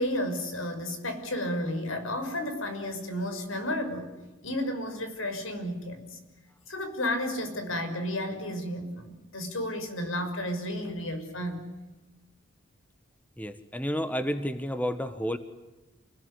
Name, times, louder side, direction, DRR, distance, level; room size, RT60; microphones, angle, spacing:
voice 1, 0.0-4.1 4.4-6.2 6.7-11.7, left 1 dB, 75° left, 7 dB, 6.1 m, -32 dB
voice 2, 13.4-15.4, equal, 5° left, 10 dB, 1.4 m, -31 dB
29.0 x 20.5 x 10.0 m, 1.1 s
head